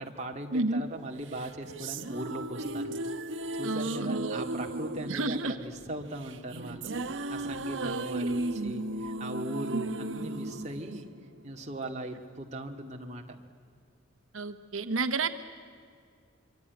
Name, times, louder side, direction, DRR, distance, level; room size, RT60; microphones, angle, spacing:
voice 1, 0.0-2.9 3.6-11.1 11.4-13.2, right 1 dB, 35° right, 2 dB, 2.2 m, -39 dB
voice 2, 0.5-0.8 3.6-4.4 5.1-5.6 7.8-8.3 9.7-9.8 14.3-15.3, right 3 dB, 85° right, 9 dB, 1.1 m, -31 dB
sound 1, 1.3-11.7, right 2 dB, 70° right, 1.1 m, -36 dB
25.0 x 24.0 x 9.3 m, 2.1 s
head